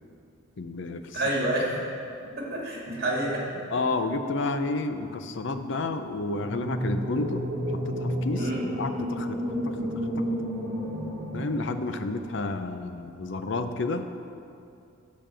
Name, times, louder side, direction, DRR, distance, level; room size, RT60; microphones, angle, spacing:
voice 1, 0.6-1.2 3.7-7.4 7.7-8.5 8.8-10.5 11.3-14.1, left 3 dB, 60° left, 8 dB, 0.5 m, -31 dB
voice 2, 1.1-1.7 2.4-3.6 8.3-8.6, right 1 dB, 50° right, -3 dB, 2.2 m, -28 dB
sound 1, 6.3-12.5, equal, 30° right, 2.1 m, -31 dB
8.9 x 5.3 x 7.5 m, 2.6 s
head